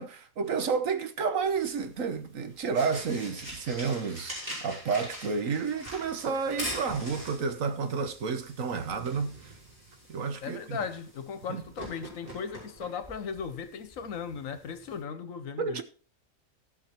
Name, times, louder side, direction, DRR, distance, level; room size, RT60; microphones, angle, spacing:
voice 1, 0.0-4.3 4.6-9.5 10.1-10.8 11.5-11.6 15.6-15.8, right 5 dB, 70° right, 1.4 m, -30 dB
sound 1, 1.4-15.0, equal, 30° right, 6.0 m, -44 dB
voice 2, 10.4-15.8, left 6 dB, 70° left, 1.3 m, -37 dB
16.0 x 5.7 x 4.4 m
omnidirectional pair, 1.5 m